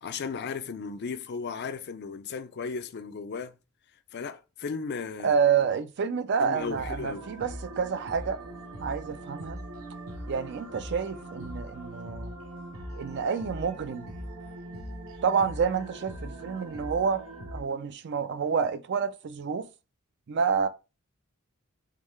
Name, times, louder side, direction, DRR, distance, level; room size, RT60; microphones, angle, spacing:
voice 1, 0.0-3.5 4.1-5.3 6.4-7.3, left 5 dB, 50° left, 0.4 m, -35 dB
voice 2, 5.2-8.4 8.8-9.6 10.3-12.3 13.0-14.1 15.2-17.2 17.5-19.7 20.3-20.7, right 6 dB, 55° right, 0.4 m, -28 dB
sound 1, 6.5-17.6, right 1 dB, 75° right, 1.0 m, -41 dB
3.8 x 3.0 x 3.2 m
head